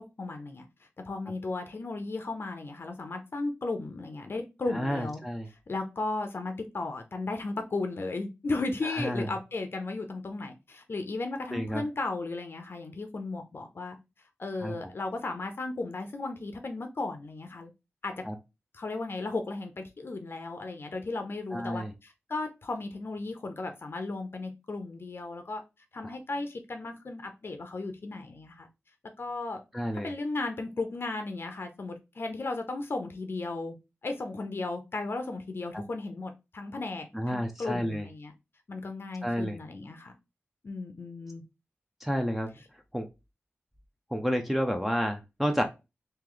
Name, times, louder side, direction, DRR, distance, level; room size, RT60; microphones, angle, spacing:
voice 1, 0.0-5.2 5.5-14.0 14.4-17.7 18.0-18.2 18.7-25.6 25.9-28.7 29.2-29.6 30.0-33.8 34.0-38.3 38.7-40.1 40.6-41.4, left 3 dB, 55° left, 0.5 m, -35 dB
voice 2, 4.7-5.5 8.8-9.3 11.5-11.8 14.6-14.7 18.2-18.3 21.5-21.9 26.0-26.2 29.7-30.1 35.7-35.8 37.1-38.1 39.2-39.6 42.0-42.5 42.9-43.1 44.1-45.6, equal, 5° right, 0.5 m, -30 dB
3.1 x 2.8 x 3.8 m
wide cardioid pair, 95°, 5 cm